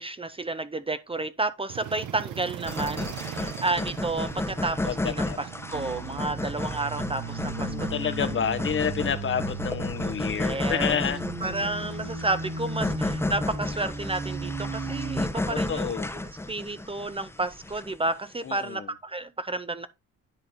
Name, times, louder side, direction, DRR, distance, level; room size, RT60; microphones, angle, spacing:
voice 1, 0.0-8.0 10.3-11.0 11.4-15.9 16.5-19.9, right 2 dB, 20° right, 0.7 m, -31 dB
sound 1, 1.7-17.7, right 11 dB, 75° right, 1.0 m, -44 dB
sound 2, 2.7-18.1, left 2 dB, 10° left, 0.9 m, -33 dB
voice 2, 4.9-5.4 7.6-11.2 15.5-16.1 18.4-18.9, left 8 dB, 40° left, 0.9 m, -29 dB
sound 3, 5.7-15.3, right 3 dB, 60° right, 4.6 m, -35 dB
10.0 x 4.1 x 4.1 m
cardioid pair, 90°, 30 cm